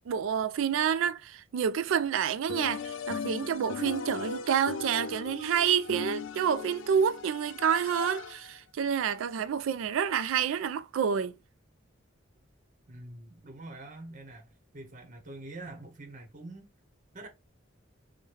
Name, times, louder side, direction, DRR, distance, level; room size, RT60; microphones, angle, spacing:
voice 1, 0.1-11.4, right 8 dB, 80° right, 0.3 m, -28 dB
sound 1, 2.5-8.6, left 6 dB, 75° left, 0.4 m, -38 dB
voice 2, 12.9-16.7 17.1-17.3, right 2 dB, 40° right, 0.9 m, -45 dB
4.6 x 2.2 x 3.1 m
head